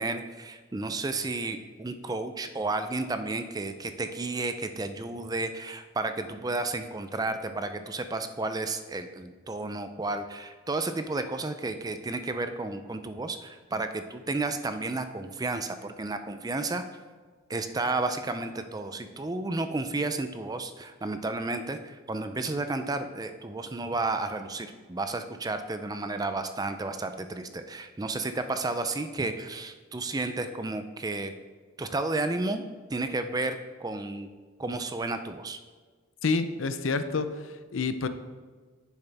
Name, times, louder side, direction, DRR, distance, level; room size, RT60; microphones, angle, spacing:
voice 1, 0.0-16.8 17.5-31.3 31.8-34.3 34.6-35.6, right 2 dB, 20° right, 9 dB, 0.4 m, -32 dB
voice 2, 36.2-38.1, left 4 dB, 80° left, 10 dB, 0.6 m, -28 dB
9.8 x 7.2 x 3.4 m, 1.4 s
head